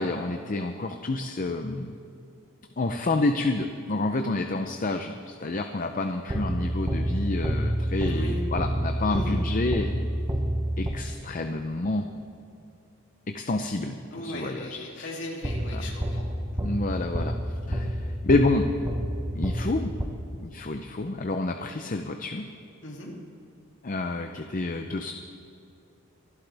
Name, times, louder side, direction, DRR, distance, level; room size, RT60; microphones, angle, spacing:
voice 1, 0.0-1.9 2.8-10.0 10.8-12.0 13.3-15.1 15.7-15.9 16.6-17.4 17.7-18.7 19.3-19.9 20.4-22.5 23.8-25.1, left 2 dB, 40° left, 5 dB, 0.6 m, -29 dB
sound 1, 6.3-11.4 15.4-20.6, equal, 15° right, 0.8 m, -29 dB
voice 2, 8.0-8.4 9.1-9.4 14.1-16.3 16.5-16.6 22.8-23.1, left 1 dB, 55° left, -2 dB, 2.9 m, -38 dB
25.0 x 12.0 x 3.5 m, 2.6 s
head